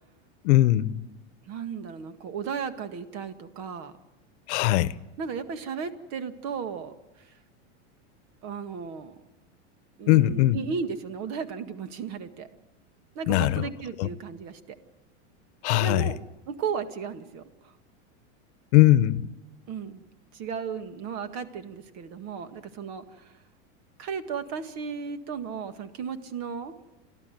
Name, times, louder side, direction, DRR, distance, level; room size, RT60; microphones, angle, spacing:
voice 1, 0.4-1.0 4.5-4.9 10.1-10.6 13.3-13.6 14.0-14.1 15.6-16.1 18.7-19.3, left 15 dB, 70° left, 1.0 m, -20 dB
voice 2, 1.5-3.9 5.2-7.3 8.4-9.2 10.0-12.5 13.2-14.8 15.7-16.2 16.5-17.7 19.7-20.0 20.3-23.4 24.0-26.7, right 6 dB, 50° right, 1.9 m, -35 dB
28.5 x 12.5 x 9.2 m
supercardioid pair, 130°, 35 cm